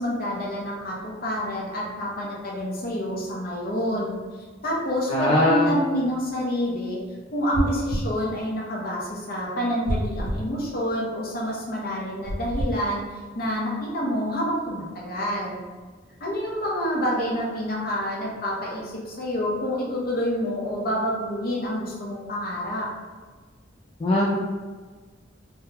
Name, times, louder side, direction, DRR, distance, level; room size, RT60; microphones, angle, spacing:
voice 1, 0.0-4.2 4.6-7.0 7.3-15.6 16.2-22.9, equal, 50° left, -3 dB, 0.7 m, -28 dB
voice 2, 5.1-5.7 24.0-24.3, left 1 dB, 30° left, -5 dB, 0.3 m, -20 dB
sound 1, 7.5-8.1 9.9-10.5 12.3-12.8, equal, 75° right, 0.5 m, -27 dB
3.5 x 2.2 x 2.8 m, 1.4 s
head